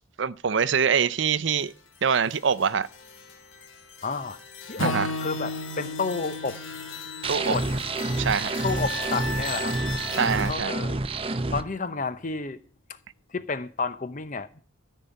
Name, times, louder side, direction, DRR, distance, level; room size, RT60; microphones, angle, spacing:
voice 1, 0.2-1.7 2.0-2.9 4.8-5.1 7.3-7.5 8.2-8.5 10.2-10.7, right 6 dB, 60° right, 0.5 m, -24 dB
sound 1, 1.6-10.5, left 3 dB, 70° left, 2.7 m, -39 dB
voice 2, 4.0-4.4 4.7-6.6 7.3-7.8 8.6-9.8 10.5-11.0 11.5-12.6 13.3-14.6, left 4 dB, 40° left, 0.7 m, -31 dB
Acoustic guitar / Strum, 4.8-9.1, left 1 dB, 85° left, 2.1 m, -35 dB
sound 2, 7.2-11.6, right 2 dB, 25° right, 0.7 m, -28 dB
13.5 x 5.6 x 9.1 m
head